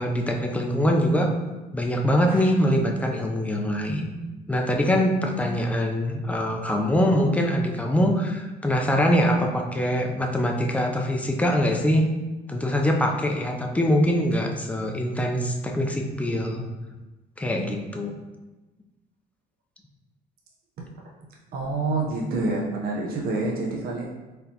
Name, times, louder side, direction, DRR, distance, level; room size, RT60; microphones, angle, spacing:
voice 1, 0.0-1.3 1.7-4.2 4.5-12.1 12.5-16.6 17.4-18.1, equal, 10° left, 1 dB, 0.5 m, -23 dB
voice 2, 21.5-24.0, right 2 dB, 65° right, -2 dB, 0.8 m, -27 dB
4.2 x 3.3 x 2.8 m, 1.1 s
cardioid pair, 110°, 17 cm